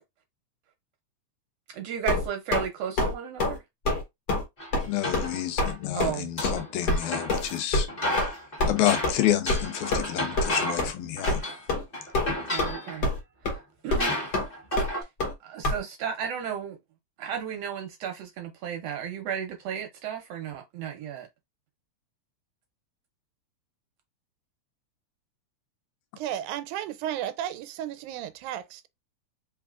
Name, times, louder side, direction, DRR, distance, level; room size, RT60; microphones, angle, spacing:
voice 1, 1.7-3.6 5.9-6.3 12.5-13.0 13.4-13.6 13.8-14.2 14.8-14.9 15.4-16.8 17.2-21.3, right 8 dB, 75° right, 1.6 m, -34 dB
sound 1, 2.1-2.7 3.0-3.1 3.4-3.6 3.8-4.0 4.3-4.4 4.7-4.9 5.1-5.3 5.6-5.7 6.0-6.1 6.4-6.6 6.9-7.0 7.3-7.4 7.7-7.8 8.2-8.3 8.6-8.7 9.0-9.1 9.5-9.6 9.9-10.1 10.4-10.5 10.8-10.9 11.3-11.4 11.7-11.8 12.1-12.7 13.0-13.2 13.4-13.5 13.9-14.0 14.3-14.4 14.8-14.9 15.2-15.3 15.6-15.8, left 2 dB, 50° left, 1.3 m, -25 dB
sound 2, 4.6-5.7 6.1-7.6 7.9-10.9 11.2-11.6 11.9-13.0 13.6-13.7 14.0-15.0, left 1 dB, 25° left, 1.4 m, -32 dB
voice 2, 4.9-7.9 8.6-11.4, left 12 dB, 85° left, 2.1 m, -29 dB
voice 3, 26.2-28.9, right 11 dB, 90° right, 2.0 m, -33 dB
4.1 x 3.4 x 2.4 m
omnidirectional pair, 3.4 m